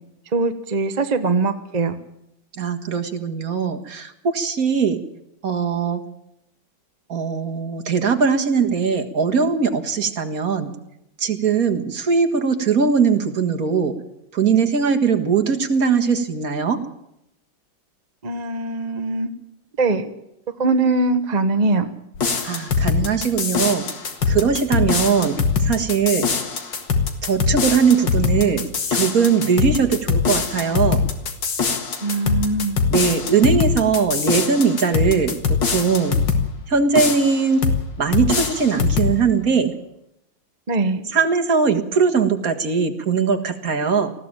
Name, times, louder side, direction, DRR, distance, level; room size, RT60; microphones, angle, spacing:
voice 1, 0.3-1.9 18.2-19.3 19.8-20.1 20.6-21.9 32.0-32.8 40.7-41.1, right 3 dB, 30° right, 8 dB, 0.8 m, -21 dB
voice 2, 2.6-5.0 5.4-6.0 7.1-10.7 11.2-13.9 14.3-16.8 22.4-23.9 24.3-26.3 27.2-31.0 32.9-36.2 36.7-37.7 38.0-39.7 41.1-44.1, right 5 dB, 45° right, 6 dB, 2.0 m, -20 dB
sound 1, 22.1-36.5 36.9-37.8 38.1-39.2, left 5 dB, 65° left, 2.5 m, -22 dB
19.5 x 15.0 x 8.9 m, 0.81 s
omnidirectional pair, 2.2 m